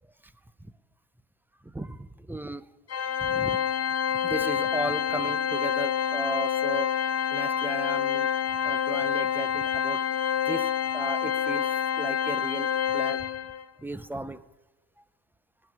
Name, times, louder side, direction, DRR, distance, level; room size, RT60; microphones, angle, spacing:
voice 1, 1.6-2.7 3.2-3.6 4.2-6.9 7.3-8.3 8.6-10.0 10.5-13.2 13.8-14.4, right 1 dB, 5° right, 14 dB, 0.5 m, -35 dB
Organ, 2.9-13.6, left 8 dB, 35° left, 0.7 m, -27 dB
18.5 x 7.0 x 9.4 m, 1.2 s
cardioid pair, 105°, 47 cm